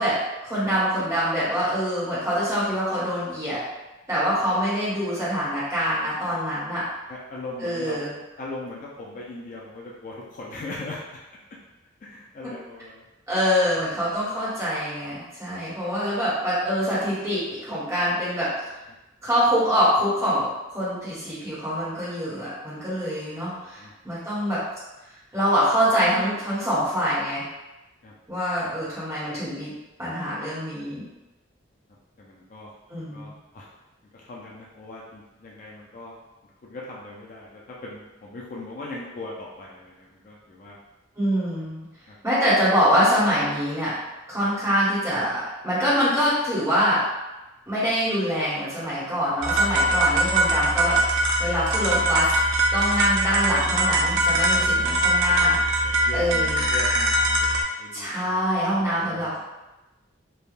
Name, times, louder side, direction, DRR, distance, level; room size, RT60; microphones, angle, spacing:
voice 1, 0.0-3.6 4.1-6.8 7.6-8.1 13.3-18.5 19.2-24.6 25.3-27.4 28.3-29.7 30.0-31.0 32.9-33.3 41.1-41.8 42.2-43.9 44.3-47.0 47.7-51.0 51.4-52.3 52.7-55.8 56.1-56.6 57.9-59.4, equal, 15° right, -11 dB, 1.1 m, -24 dB
voice 2, 7.1-8.0 8.4-11.0 12.0-13.0 13.8-13.9 23.4-23.9 28.0-28.1 32.2-33.7 34.1-36.1 36.6-40.8 42.1-42.2 49.3-49.4 49.7-50.1 54.2-58.4 58.8-59.4, left 2 dB, 40° left, -4 dB, 0.4 m, -40 dB
sound 1, 49.4-57.6, right 1 dB, 75° right, 0.4 m, -22 dB
3.3 x 2.2 x 2.5 m, 1.0 s
head